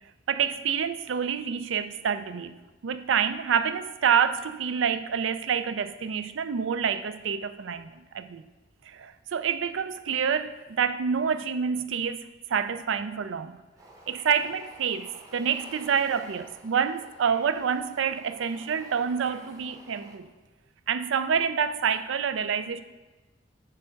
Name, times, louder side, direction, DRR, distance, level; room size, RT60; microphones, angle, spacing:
voice 1, 0.3-8.4 8.9-12.2 12.5-13.6 14.1-20.3 20.9-22.8, right 7 dB, 85° right, 12 dB, 0.4 m, -27 dB
Bird / Ocean, 13.8-20.2, right 1 dB, 20° right, 0.8 m, -50 dB
7.6 x 3.5 x 6.3 m, 1.1 s
head